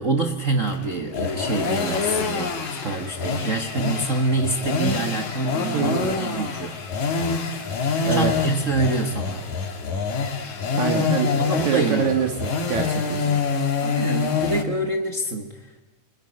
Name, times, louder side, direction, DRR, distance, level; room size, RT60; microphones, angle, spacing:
voice 1, 0.0-6.8 8.1-9.5 11.1-12.1 13.8-15.7, right 3 dB, 85° right, 4 dB, 0.6 m, -26 dB
sound 1, 0.6-14.6, left 5 dB, 65° left, 3.6 m, -26 dB
voice 2, 5.7-6.2 8.0-8.3 10.7-11.3 11.6-13.4, right 7 dB, 65° right, 4 dB, 2.7 m, -25 dB
29.0 x 20.0 x 9.8 m, 1.2 s
omnidirectional pair, 3.7 m